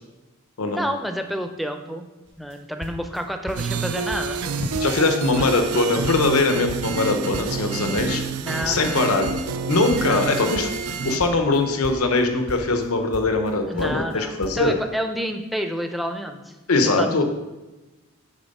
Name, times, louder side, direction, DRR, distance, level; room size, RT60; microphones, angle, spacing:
voice 1, 0.7-2.0 2.4-4.4 8.4-9.2 10.0-10.4 11.1-11.2 13.7-16.4 17.0-17.2, equal, ahead, 5 dB, 0.5 m, -29 dB
sound 1, 2.3-2.6 2.8-3.8 4.1-4.5 4.7-6.4 6.7-9.6 9.9-12.2 12.5-13.5 13.8-14.2 14.4-14.6, equal, 55° right, 1.3 m, -37 dB
sound 2, 3.6-11.2, right 5 dB, 90° right, 0.5 m, -28 dB
voice 2, 4.8-8.2 8.7-9.3 9.7-10.7 11.0-14.7 16.7-17.2, left 3 dB, 90° left, 5 dB, 0.9 m, -21 dB
9.0 x 4.0 x 5.4 m, 1.1 s
head